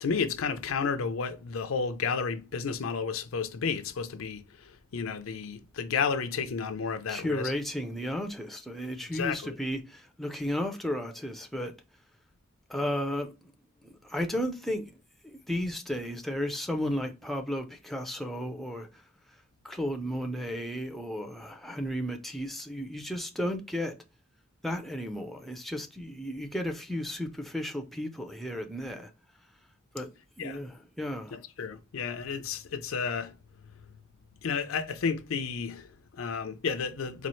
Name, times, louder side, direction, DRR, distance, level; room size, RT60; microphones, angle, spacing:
voice 1, 0.0-7.5 9.1-9.5 30.4-30.6 31.3-33.3 34.4-37.3, left 5 dB, 85° left, 0.5 m, -32 dB
voice 2, 7.1-11.8 12.7-13.5 13.8-15.0 15.2-19.0 19.6-23.9 24.6-29.1 29.9-30.1 30.4-31.4, equal, ahead, 0.4 m, -34 dB
4.2 x 2.4 x 3.1 m
head